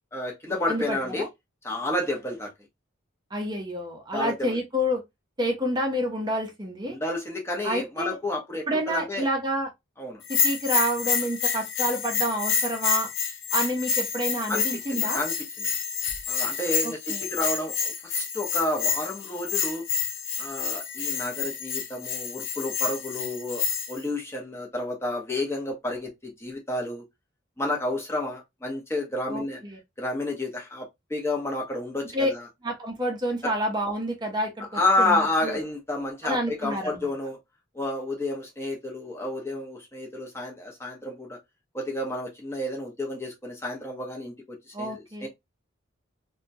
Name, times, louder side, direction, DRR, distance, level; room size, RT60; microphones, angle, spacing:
voice 1, 0.1-1.3 1.6-2.5 4.1-4.6 6.8-9.3 10.0-10.2 14.5-15.7 16.3-19.9 20.4-27.0 27.6-29.6 30.0-32.5 33.4-33.5 34.7-37.4 37.7-41.4 41.7-45.3, left 2 dB, 15° left, 0.8 m, -30 dB
voice 2, 0.7-1.3 3.3-5.0 5.4-7.0 7.6-8.2 8.7-9.7 10.3-13.1 13.5-15.2 16.8-17.3 29.3-29.8 32.1-32.3 32.6-35.6 36.2-37.1 44.7-45.3, equal, 20° right, 0.7 m, -29 dB
Bell, 10.2-24.0, left 6 dB, 70° left, 0.5 m, -28 dB
2.8 x 2.2 x 2.6 m
head